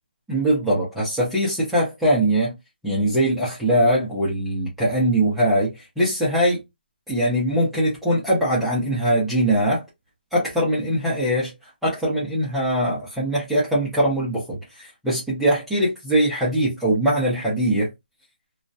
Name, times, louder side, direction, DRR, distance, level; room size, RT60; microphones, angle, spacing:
voice 1, 0.3-2.5 2.8-6.6 7.1-9.8 10.3-11.5 11.8-17.9, right 1 dB, ahead, 0.6 m, -21 dB
2.3 x 2.1 x 2.6 m
hypercardioid pair, 165°, 6 cm